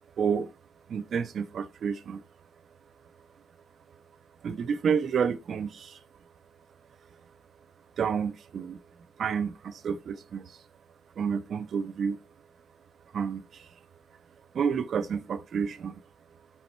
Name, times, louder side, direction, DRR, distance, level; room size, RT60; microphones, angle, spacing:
voice 1, 0.2-0.6 0.9-2.2 4.4-6.0 8.0-8.8 9.2-10.6 11.2-12.2 13.1-13.7 14.5-16.0, right 6 dB, 55° right, 0.9 m, -30 dB
9.0 x 8.1 x 4.2 m
cardioid pair, 90°, 0 cm